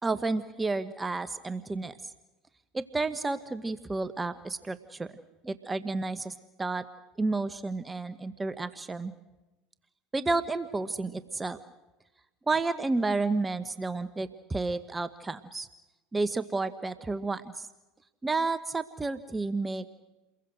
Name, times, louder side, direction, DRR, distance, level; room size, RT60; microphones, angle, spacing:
voice 1, 0.0-2.0 2.7-5.2 5.4-6.9 7.2-9.1 10.1-11.6 12.5-15.7 16.1-17.7 18.2-19.9, right 3 dB, 15° right, 13 dB, 1.2 m, -31 dB
29.5 x 22.5 x 6.4 m, 1.1 s
hypercardioid pair, 85°, 0 cm